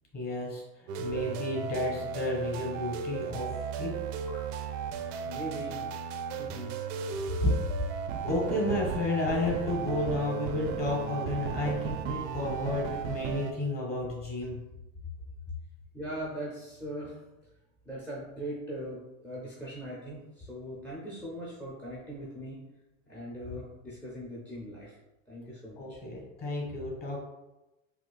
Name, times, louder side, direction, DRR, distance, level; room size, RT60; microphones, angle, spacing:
voice 1, 0.1-3.5 3.8-3.9 7.4-14.6 25.8-27.2, left 2 dB, 25° left, -2 dB, 1.4 m, -32 dB
sound 1, 0.9-13.5, right 7 dB, 75° right, 0.5 m, -35 dB
voice 2, 5.2-5.9 6.4-6.8 15.9-17.5 17.8-22.6 23.1-24.9 25.3-26.0, right 1 dB, 5° left, -6 dB, 0.5 m, -40 dB
4.2 x 2.5 x 2.3 m, 0.98 s
supercardioid pair, 110°, 37 cm